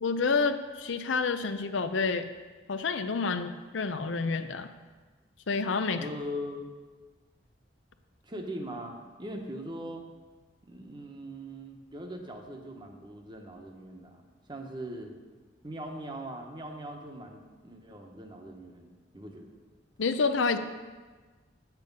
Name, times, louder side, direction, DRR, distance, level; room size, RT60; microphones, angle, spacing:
voice 1, 0.0-2.3 2.7-4.7 5.5-6.0 20.0-20.6, left 4 dB, 80° left, 9 dB, 0.6 m, -28 dB
voice 2, 6.0-6.7 8.2-10.0 10.6-14.2 14.5-15.1 15.6-19.6, equal, 25° right, 3 dB, 1.1 m, -41 dB
8.3 x 8.2 x 5.4 m, 1.4 s
head